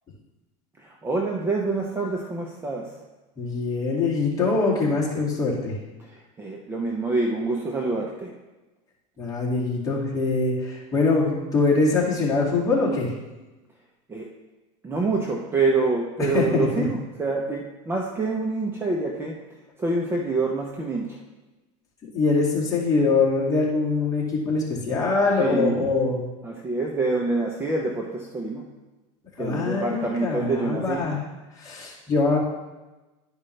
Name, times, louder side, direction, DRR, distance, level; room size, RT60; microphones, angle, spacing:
voice 1, 0.8-3.0 6.0-8.3 14.1-14.3 14.8-19.4 19.8-21.2 25.4-25.9 26.4-28.7 29.4-31.2, right 3 dB, 15° right, -1 dB, 0.8 m, -26 dB
voice 2, 3.4-5.8 9.2-13.1 16.3-16.9 22.1-26.3 29.4-31.2 31.6-32.4, left 3 dB, 20° left, -5 dB, 2.3 m, -23 dB
11.5 x 5.2 x 3.3 m, 1.1 s
supercardioid pair, 135°, 17 cm